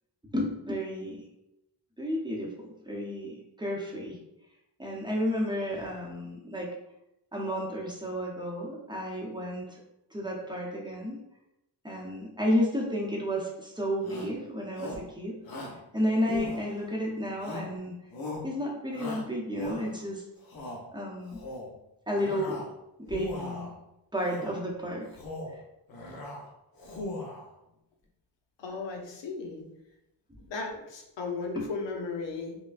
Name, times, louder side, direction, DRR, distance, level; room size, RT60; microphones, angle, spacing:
voice 1, 0.3-1.3 2.0-4.2 4.8-6.7 7.3-9.8 10.1-11.2 11.8-15.4 15.9-18.0 18.4-20.2 20.9-21.4 22.1-22.6 23.1-23.7 24.1-25.0 31.6-31.7, equal, 10° right, -3 dB, 0.8 m, -32 dB
Shout, 14.0-14.4 14.8-15.1 15.4-15.8 16.3-16.9 17.4-17.8 18.1-18.5 18.9-20.0 20.4-20.8 21.3-21.7 22.1-22.7 23.0-23.7 24.3-24.6 25.1-25.6 25.9-26.4 26.8-27.5, left 2 dB, 55° left, 0.9 m, -39 dB
voice 2, 28.6-29.7 30.5-32.6, left 4 dB, 85° left, 1 dB, 0.8 m, -35 dB
5.5 x 2.2 x 2.5 m, 0.86 s
wide cardioid pair, 115°, 42 cm